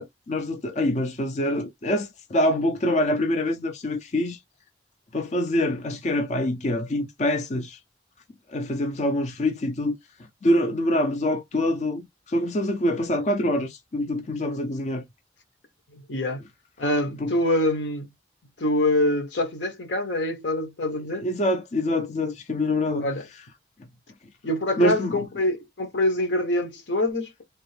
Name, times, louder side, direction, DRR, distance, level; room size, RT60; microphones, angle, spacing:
voice 1, 0.0-4.4 5.1-7.8 8.5-10.0 10.4-15.0 17.2-17.3 21.2-23.1 24.8-25.2, left 1 dB, 40° left, 0.5 m, -25 dB
voice 2, 15.9-16.4 16.8-18.1 18.6-21.3 23.0-23.2 24.4-27.4, left 1 dB, 80° left, 1.0 m, -25 dB
3.4 x 2.4 x 3.2 m
head